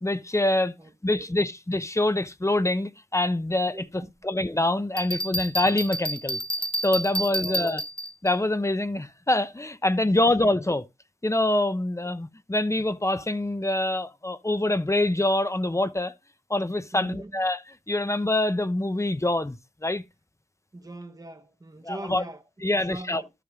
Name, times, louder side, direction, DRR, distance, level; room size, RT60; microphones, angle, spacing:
voice 1, 0.0-0.7 1.0-6.4 6.8-7.8 8.2-10.9 11.2-16.1 16.5-17.6 17.9-20.0 21.8-22.2 22.6-23.2, left 1 dB, 25° left, 0.9 m, -25 dB
voice 2, 0.8-1.4 3.7-4.3 7.2-7.8 10.0-10.3 16.9-17.4 20.7-22.4 22.7-23.3, right 2 dB, 30° right, 1.2 m, -42 dB
Bell, 5.0-8.3, equal, 45° left, 1.2 m, -30 dB
13.0 x 5.4 x 3.7 m
wide cardioid pair, 55°, 12 cm